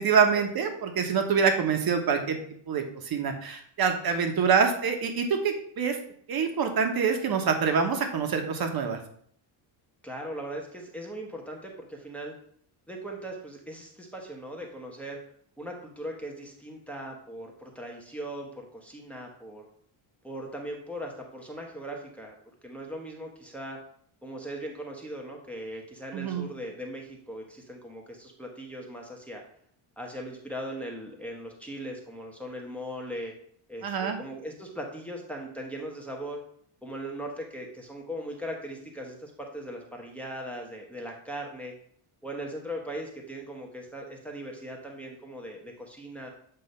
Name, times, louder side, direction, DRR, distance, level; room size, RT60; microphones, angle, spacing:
voice 1, 0.0-2.4 2.7-6.0 6.3-9.0 26.1-26.4 33.8-34.2, right 6 dB, 45° right, 5 dB, 1.1 m, -25 dB
voice 2, 10.0-12.3 12.9-15.2 15.6-19.7 20.2-22.3 22.6-23.8 24.2-29.4 30.0-33.3 33.7-36.4 36.8-41.7 42.2-46.3, right 1 dB, 5° left, 0 dB, 0.9 m, -39 dB
7.9 x 2.7 x 5.3 m, 0.63 s
cardioid pair, 155°, 49 cm